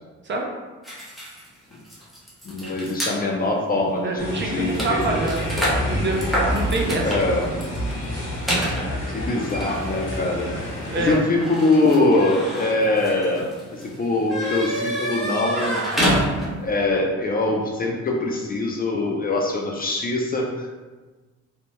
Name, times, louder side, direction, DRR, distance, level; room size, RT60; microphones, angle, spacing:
sound 1, 0.8-3.2 3.9-4.0 4.3-16.7, equal, ahead, 0.7 m, -28 dB
voice 1, 2.4-5.3 7.0-7.5 9.1-10.5 11.0-15.8 16.6-20.7, left 2 dB, 30° left, 0 dB, 0.4 m, -23 dB
voice 2, 4.0-7.2 9.0-9.2 10.9-11.3, right 2 dB, 40° right, 0 dB, 0.5 m, -27 dB
sound 2, 4.2-11.1, equal, 55° left, 1.1 m, -29 dB
2.7 x 2.1 x 3.0 m, 1.3 s
cardioid pair, 90°, 30 cm